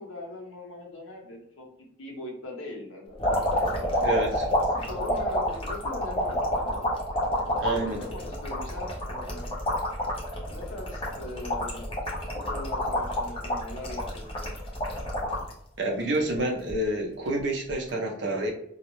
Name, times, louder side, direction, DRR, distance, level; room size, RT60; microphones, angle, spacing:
voice 1, 0.0-1.7 2.0-3.2 3.9-4.5 4.9-6.8 7.5-9.6 10.5-11.8 12.5-14.5, left 2 dB, 90° left, 1 dB, 0.8 m, -40 dB
sound 1, 3.2-15.5 16.0-16.7 17.7-17.9, left 1 dB, 30° left, 0.6 m, -29 dB
voice 2, 4.0-4.4 7.6-8.0 15.8-18.5, right 1 dB, 65° right, 1 dB, 0.6 m, -28 dB
2.2 x 2.0 x 3.0 m, 0.73 s
head